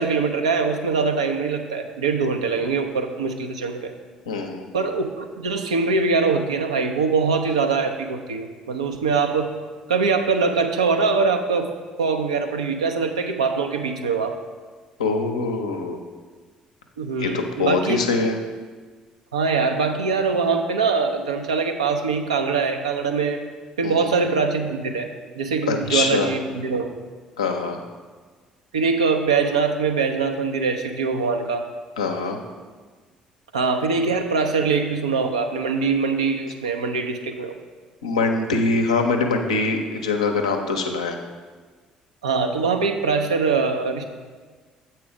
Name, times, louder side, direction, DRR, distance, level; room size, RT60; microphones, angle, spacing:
voice 1, 0.0-3.9 4.7-9.5 9.9-11.7 12.0-14.4 17.0-18.0 19.3-23.4 23.8-25.1 25.4-26.9 28.7-31.7 33.5-37.5 42.2-44.0, right 4 dB, 80° right, 5 dB, 0.5 m, -23 dB
voice 2, 4.3-4.8 15.0-16.0 17.2-18.4 23.8-24.1 25.7-26.3 27.4-27.8 32.0-32.4 38.0-41.2, left 3 dB, 80° left, 3 dB, 0.6 m, -23 dB
7.5 x 4.3 x 5.0 m, 1.5 s
figure-of-eight pair, 50°, 3 cm